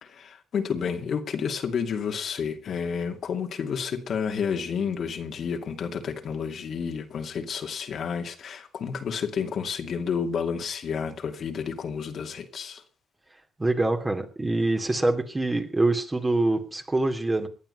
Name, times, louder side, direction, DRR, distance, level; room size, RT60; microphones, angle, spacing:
voice 1, 0.0-12.8, left 6 dB, 60° left, 2.4 m, -30 dB
voice 2, 13.6-17.5, right 2 dB, 20° right, 2.9 m, -25 dB
18.5 x 11.0 x 5.5 m
cardioid pair, 90°, 0 cm